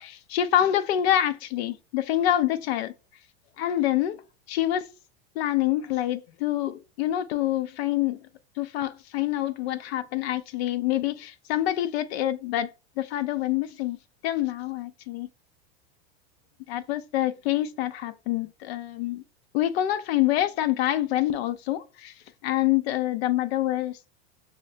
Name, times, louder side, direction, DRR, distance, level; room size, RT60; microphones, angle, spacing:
voice 1, 0.0-2.9 3.6-4.2 4.5-4.9 5.4-8.2 8.6-12.7 13.0-14.0 14.2-15.3 16.7-19.2 19.5-22.1 22.4-24.1, left 13 dB, 70° left, 0.5 m, -26 dB
5.5 x 2.2 x 2.6 m
supercardioid pair, 115°, 32 cm